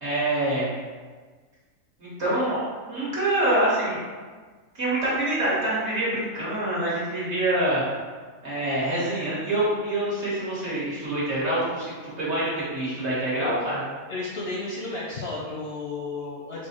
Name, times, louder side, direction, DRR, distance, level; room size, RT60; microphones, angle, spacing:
voice 1, 0.0-0.7 2.0-4.0 4.8-7.8 8.4-13.8, right 1 dB, 55° right, -9 dB, 1.8 m, -26 dB
voice 2, 14.1-16.7, left 3 dB, 60° left, -4 dB, 0.7 m, -33 dB
4.6 x 2.1 x 4.3 m, 1.5 s
omnidirectional pair, 1.4 m